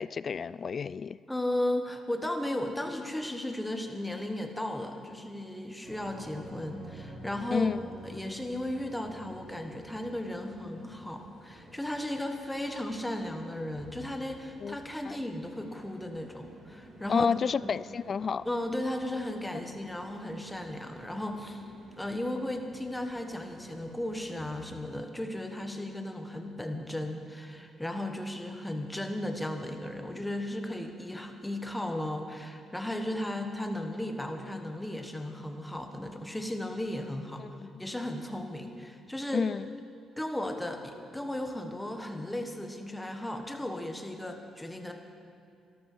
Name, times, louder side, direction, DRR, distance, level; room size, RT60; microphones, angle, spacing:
voice 1, 0.0-1.2 7.5-7.9 14.6-14.8 15.1-15.2 17.1-18.4 37.4-37.8 39.3-39.7, left 6 dB, 45° left, 19 dB, 0.3 m, -30 dB
voice 2, 1.3-7.7 8.0-17.3 18.4-21.6 22.0-37.4 37.8-39.5 40.2-44.9, left 1 dB, 10° left, 4 dB, 1.5 m, -35 dB
sound 1, 5.8-24.8, right 1 dB, 60° right, 4.5 m, -51 dB
13.0 x 12.5 x 6.2 m, 2.4 s
cardioid pair, 90°, 0 cm